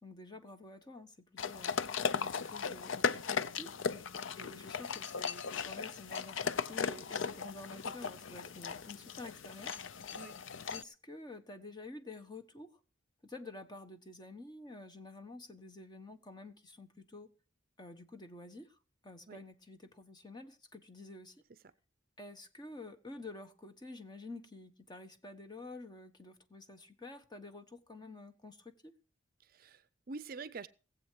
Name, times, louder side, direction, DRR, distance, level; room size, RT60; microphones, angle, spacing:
voice 1, 0.0-1.7 2.2-3.7 4.4-9.7 10.7-12.8 13.2-17.3 17.8-18.8 19.0-21.4 22.2-28.9, left 2 dB, 20° left, 1.2 m, -49 dB
sound 1, 1.4-10.8, left 6 dB, 80° left, 0.6 m, -37 dB
voice 2, 29.4-30.7, right 4 dB, 45° right, 0.5 m, -46 dB
19.0 x 7.9 x 4.7 m
head